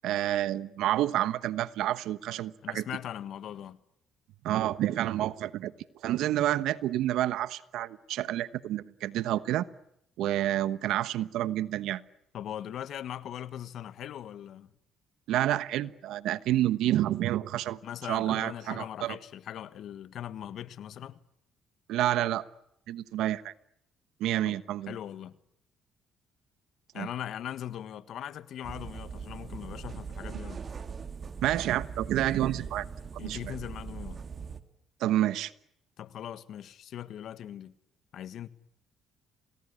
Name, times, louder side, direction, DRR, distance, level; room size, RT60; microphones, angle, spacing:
voice 1, 0.0-2.9 4.4-5.7 6.0-9.7 10.2-12.0 15.3-17.8 18.1-19.2 21.9-22.4 22.9-23.5 24.2-25.0 26.9-27.1 31.4-32.8 33.1-33.5 35.0-35.5, right 13 dB, 75° right, 1.2 m, -29 dB
voice 2, 2.6-3.8 12.3-14.7 17.8-21.2 24.4-24.6 24.9-25.3 26.9-30.6 33.2-34.2 36.0-37.7 38.1-38.5, left 10 dB, 65° left, 1.5 m, -40 dB
sound 1, 28.6-34.6, right 6 dB, 40° right, 2.5 m, -40 dB
28.0 x 19.5 x 9.9 m
supercardioid pair, 70°, 0 cm